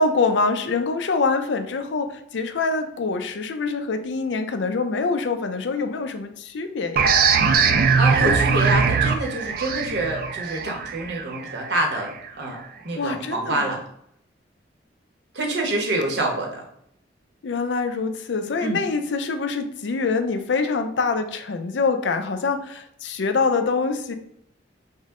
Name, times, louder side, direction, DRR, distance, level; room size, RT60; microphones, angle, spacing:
voice 1, 0.0-7.1 13.0-13.7 17.4-24.1, left 4 dB, 80° left, 8 dB, 0.5 m, -25 dB
sound 1, 7.0-12.3, right 5 dB, 50° right, 0.4 m, -21 dB
voice 2, 8.0-12.1 12.4-12.6 12.8-13.8 15.3-16.6 18.6-18.8, right 1 dB, 65° right, 0 dB, 1.0 m, -26 dB
5.4 x 2.1 x 3.6 m, 0.72 s
head